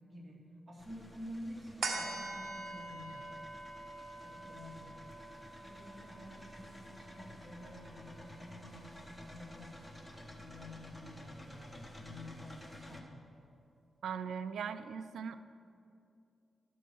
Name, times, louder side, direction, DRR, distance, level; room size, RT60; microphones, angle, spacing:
voice 1, 0.1-0.4 0.7-3.3 3.9-5.3 5.6-13.3, left 1 dB, 30° right, -3 dB, 2.3 m, -50 dB
sound 1, 0.8-13.0, left 1 dB, 10° left, 1.0 m, -53 dB
sound 2, 1.8-8.6 9.0-9.1, right 3 dB, 65° right, 1.0 m, -45 dB
voice 2, 14.0-15.4, right 7 dB, 85° right, 12 dB, 0.4 m, -39 dB
11.5 x 4.6 x 6.2 m, 2.5 s
cardioid pair, 80°, 0 cm